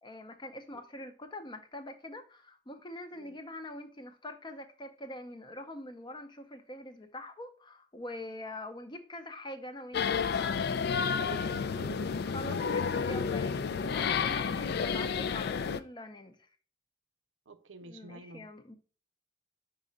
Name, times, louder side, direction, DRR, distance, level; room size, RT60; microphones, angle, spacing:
voice 1, 0.0-10.2 12.2-13.6 13.8-16.5 17.9-18.7, left 1 dB, 25° left, 0.6 m, -44 dB
voice 2, 0.7-1.0 3.1-3.4 11.2-12.1 12.5-13.1 17.5-18.5, right 4 dB, 85° right, 0.6 m, -48 dB
sound 1, 9.9-15.8, left 6 dB, 60° left, 0.4 m, -31 dB
5.0 x 4.7 x 4.0 m
head